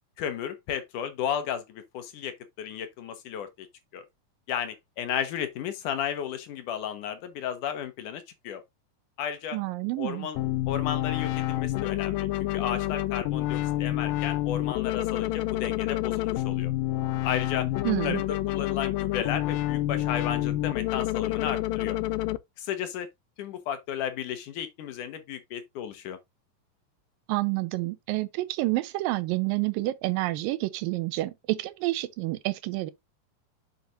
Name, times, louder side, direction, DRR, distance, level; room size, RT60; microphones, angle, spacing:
voice 1, 0.2-3.5 3.9-4.0 4.5-8.6 9.2-9.6 10.0-10.4 10.7-12.3 12.5-16.7 17.2-17.7 18.0-22.0 22.6-23.1 23.4-26.2, left 9 dB, 70° left, 2.5 m, -33 dB
voice 2, 9.5-10.3 17.8-18.2 27.3-32.9, right 19 dB, 90° right, 2.4 m, -29 dB
sound 1, 10.4-22.4, left 15 dB, 90° left, 2.4 m, -28 dB
7.3 x 7.0 x 2.5 m
omnidirectional pair, 4.0 m